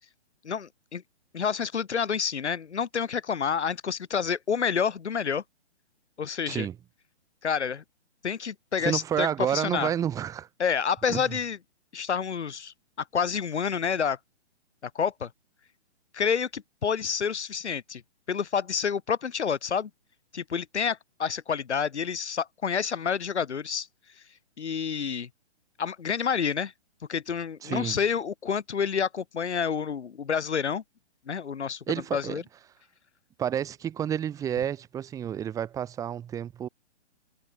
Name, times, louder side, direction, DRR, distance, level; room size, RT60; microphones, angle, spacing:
voice 1, 0.4-1.0 1.3-5.4 6.2-6.7 7.4-7.8 8.2-9.9 10.6-11.6 11.9-12.7 13.1-14.2 14.8-15.3 16.1-18.0 18.3-19.9 20.3-23.9 24.6-25.3 25.8-26.7 27.1-30.8 31.3-31.8 32.1-32.4, left 7 dB, 75° left, 3.6 m, -28 dB
voice 2, 8.8-10.5 11.1-11.2 27.6-28.0 31.9-32.4 33.4-36.7, right 9 dB, 10° right, 6.1 m, -30 dB
hypercardioid pair, 170°, 34 cm